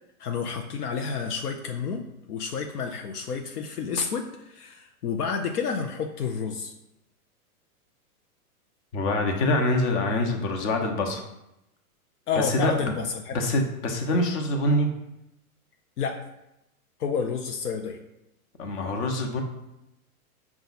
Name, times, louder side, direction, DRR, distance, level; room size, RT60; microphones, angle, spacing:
voice 1, 0.2-6.7 12.3-13.4 16.0-16.3 17.0-18.0, left 6 dB, 80° left, 3 dB, 0.6 m, -30 dB
voice 2, 8.9-11.2 12.3-12.9 13.3-14.9 18.6-19.4, left 1 dB, 50° left, 3 dB, 0.9 m, -25 dB
5.2 x 2.4 x 3.9 m, 0.88 s
hypercardioid pair, 120°, 45 cm